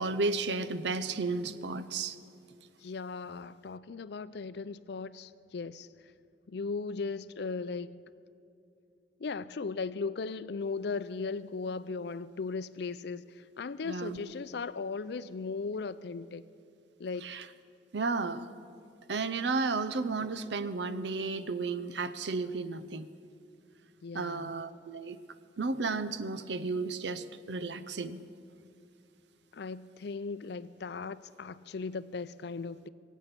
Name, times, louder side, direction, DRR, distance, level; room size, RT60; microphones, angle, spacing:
voice 1, 0.0-2.2 13.9-14.2 17.2-17.4 17.9-18.4 19.1-23.1 24.1-25.2 25.6-28.2, right 3 dB, 75° right, 0.7 m, -33 dB
voice 2, 2.8-5.9 6.5-8.0 9.2-16.4 17.0-17.3 24.0-24.5 29.5-32.9, left 4 dB, 65° left, 0.5 m, -37 dB
22.5 x 8.4 x 6.8 m
head